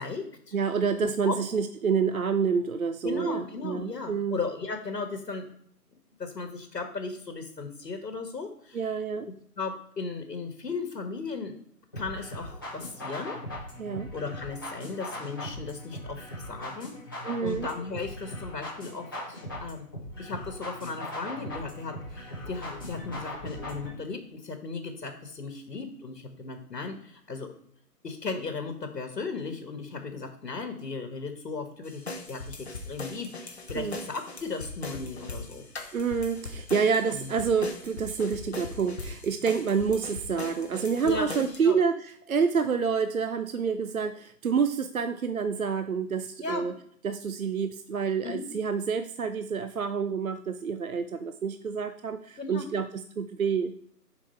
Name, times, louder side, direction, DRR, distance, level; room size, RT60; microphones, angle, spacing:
voice 1, 0.0-0.5 1.0-1.4 3.0-5.5 6.2-8.9 9.6-11.6 11.9-13.4 14.1-19.9 20.2-27.5 28.0-35.6 37.1-37.3 41.0-41.8 46.4-46.6 48.2-48.5 52.4-52.7, left 4 dB, 85° left, 5 dB, 1.5 m, -36 dB
voice 2, 0.5-4.4 8.7-9.3 13.8-14.1 17.2-17.7 33.7-34.0 35.9-46.7 47.0-53.8, right 6 dB, 60° right, 10 dB, 0.5 m, -28 dB
sound 1, 11.9-23.9, left 1 dB, 15° left, 1.2 m, -39 dB
sound 2, 31.9-41.6, left 2 dB, 40° left, 1.1 m, -40 dB
7.4 x 4.8 x 4.3 m, 0.67 s
figure-of-eight pair, 175°, 48 cm